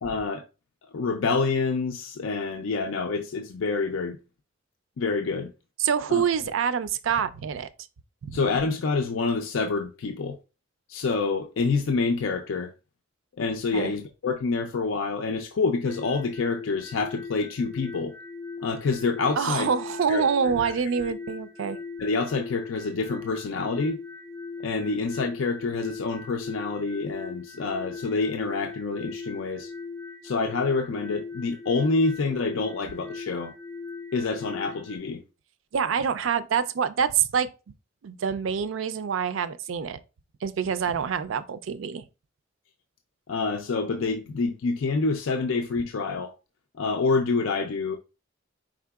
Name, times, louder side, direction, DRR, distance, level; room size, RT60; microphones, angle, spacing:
voice 1, 0.0-0.4 0.9-4.2 5.0-5.5 6.1-6.2 8.3-10.4 10.9-12.7 13.4-18.1 18.6-19.7 20.1-20.7 22.0-24.0 24.6-29.7 30.2-33.5 34.1-35.2 43.3-46.3 46.8-48.0, left 4 dB, 85° left, 0.4 m, -27 dB
voice 2, 5.8-7.7 8.2-8.4 13.7-13.9 19.4-21.8 35.7-37.5 38.0-40.0 40.4-42.0, right 7 dB, 85° right, 0.4 m, -26 dB
sound 1, 15.9-35.0, left 4 dB, 20° left, 0.5 m, -39 dB
4.9 x 3.7 x 2.3 m
head